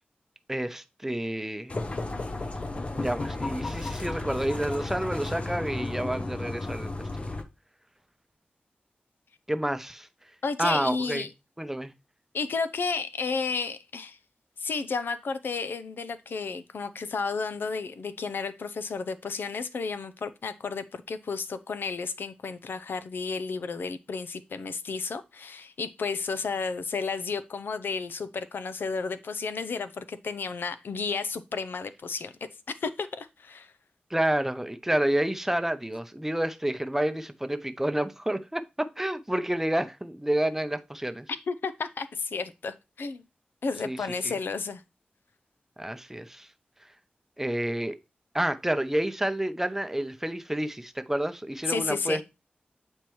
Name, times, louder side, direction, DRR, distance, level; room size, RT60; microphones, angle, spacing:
voice 1, 0.5-1.8 2.9-6.9 9.5-10.1 10.6-11.3 11.6-11.9 34.1-41.3 43.8-44.0 44.2-44.3 45.8-46.5 47.4-48.0 48.3-52.2, right 1 dB, 10° right, 0.6 m, -29 dB
sound 1, 1.7-7.4, left 2 dB, 35° left, 0.8 m, -33 dB
voice 2, 10.4-11.3 12.3-14.2 14.6-32.3 32.7-33.7 41.5-43.2 43.6-44.8 51.7-52.2, left 4 dB, 85° left, 0.5 m, -32 dB
8.6 x 4.4 x 3.1 m
wide cardioid pair, 80°, 3 cm